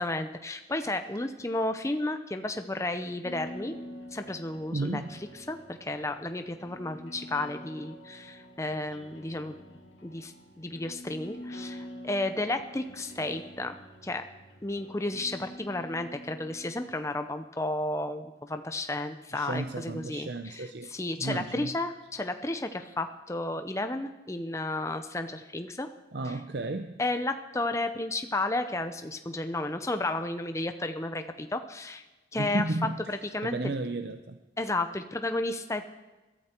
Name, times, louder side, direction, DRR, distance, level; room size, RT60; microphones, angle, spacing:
voice 1, 0.0-3.7 4.1-5.0 5.3-9.6 10.0-13.8 14.0-14.2 14.6-25.9 26.3-26.4 27.0-32.0 32.3-32.6 33.1-33.7 34.6-35.8, left 2 dB, 15° left, 7 dB, 0.7 m, -32 dB
sound 1, 3.2-16.9, equal, 80° left, 2.5 m, -46 dB
voice 2, 4.7-5.2 19.3-20.9 21.2-21.7 26.1-27.0 32.4-33.0 33.4-34.4, right 2 dB, 60° right, 7 dB, 0.7 m, -33 dB
22.0 x 13.5 x 4.5 m, 1.1 s
head